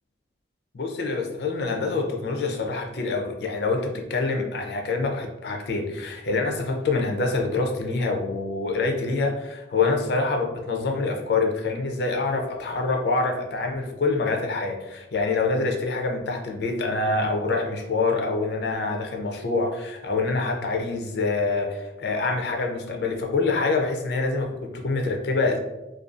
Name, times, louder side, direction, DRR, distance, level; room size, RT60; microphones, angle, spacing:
voice 1, 0.7-25.6, left 3 dB, 60° left, 3 dB, 0.4 m, -26 dB
2.5 x 2.2 x 2.4 m, 0.97 s
head